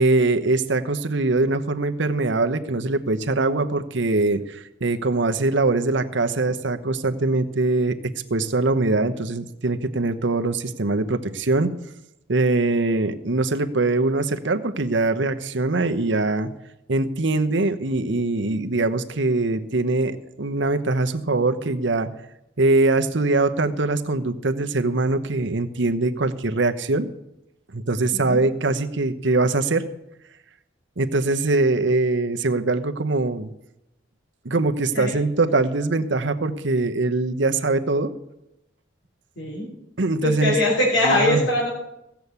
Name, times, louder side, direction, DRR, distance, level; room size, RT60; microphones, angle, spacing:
voice 1, 0.0-11.8 12.3-16.5 16.9-22.1 22.6-27.1 27.7-29.9 31.0-33.5 34.4-38.1 40.0-40.6 41.0-41.5, right 2 dB, 65° right, 8 dB, 0.9 m, -22 dB
voice 2, 28.1-28.4 34.9-35.1 39.4-39.7 40.2-41.7, left 1 dB, 80° left, -3 dB, 3.3 m, -22 dB
16.0 x 7.0 x 8.1 m, 0.86 s
head